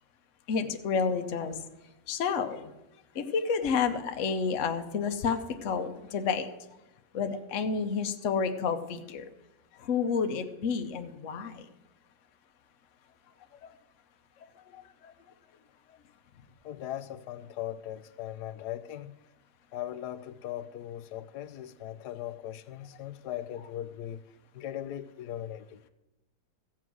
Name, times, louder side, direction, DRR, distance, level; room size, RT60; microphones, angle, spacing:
voice 1, 0.5-1.5 2.1-2.6 3.2-5.4 5.6-5.9 6.1-6.5 7.1-9.2 9.9-11.5, left 6 dB, 55° left, 1.1 m, -29 dB
voice 2, 16.6-19.1 19.7-24.2 24.5-25.8, left 11 dB, 80° left, 1.2 m, -39 dB
15.0 x 7.6 x 6.2 m
omnidirectional pair, 1.8 m